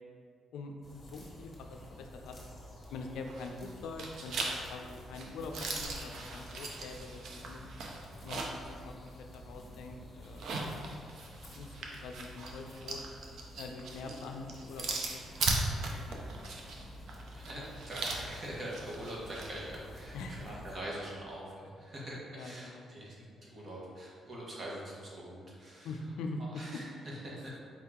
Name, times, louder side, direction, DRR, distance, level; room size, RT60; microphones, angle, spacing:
voice 1, 0.5-2.4 2.9-7.6 8.2-10.9 11.5-11.7 12.0-13.0 13.6-15.2 16.1-16.5 20.1-20.5 22.3-22.9 25.8-26.6, left 3 dB, 85° left, 3 dB, 0.4 m, -44 dB
sound 1, 0.8-20.8, left 1 dB, 25° left, 1.2 m, -50 dB
sound 2, 3.3-3.7 4.0-8.7 9.1-9.2 10.2-19.5, right 3 dB, 70° right, 0.6 m, -38 dB
voice 2, 17.3-26.0 26.4-27.6, right 1 dB, 40° right, -5 dB, 1.2 m, -44 dB
4.7 x 2.8 x 3.6 m, 2.2 s
cardioid pair, 90°, 0 cm